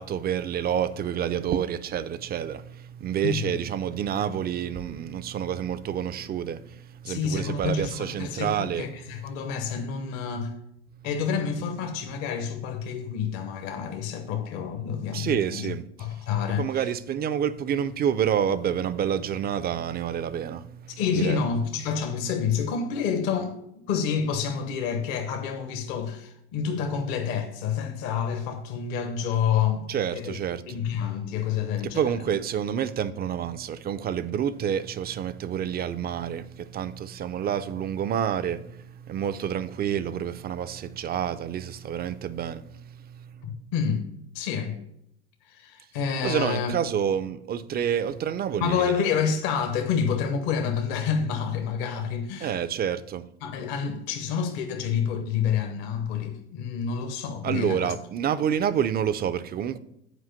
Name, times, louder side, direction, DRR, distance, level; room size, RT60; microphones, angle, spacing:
voice 1, 0.0-8.9 15.1-15.9 16.6-21.4 29.9-30.6 31.8-43.5 46.2-49.0 52.4-53.3 57.4-59.8, right 9 dB, 30° right, 0.5 m, -28 dB
voice 2, 3.2-3.6 7.1-10.6 11.0-15.7 16.0-16.7 21.0-23.5 23.9-29.9 30.1-30.4 30.7-32.1 43.7-44.1 44.3-44.8 45.4-46.7 48.6-52.6 53.4-57.9, left 7 dB, 55° left, 1.0 m, -28 dB
8.2 x 4.8 x 5.7 m
figure-of-eight pair, 70°, 32 cm